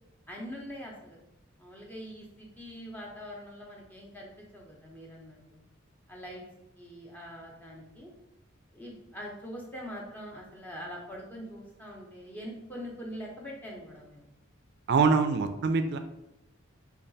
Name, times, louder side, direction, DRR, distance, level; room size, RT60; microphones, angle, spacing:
voice 1, 0.3-1.2 1.6-5.6 6.1-6.4 6.8-8.1 8.7-14.2, equal, 10° left, -2 dB, 0.7 m, -43 dB
voice 2, 14.9-16.0, right 5 dB, 55° right, 8 dB, 0.3 m, -24 dB
3.3 x 2.3 x 3.9 m, 0.94 s
head